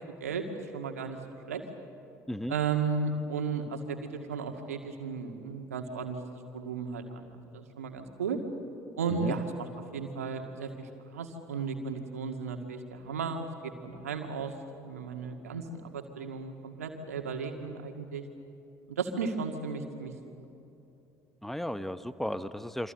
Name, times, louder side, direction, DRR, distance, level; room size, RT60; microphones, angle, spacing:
voice 1, 0.7-1.2 1.5-1.6 2.5-8.4 9.0-13.5 13.8-14.5 14.8-18.2 18.9-20.1, right 5 dB, 80° right, 4 dB, 2.1 m, -34 dB
voice 2, 21.4-22.9, left 1 dB, 5° left, 13 dB, 1.2 m, -35 dB
28.5 x 25.0 x 7.9 m, 2.8 s
figure-of-eight pair, 60°, 8 cm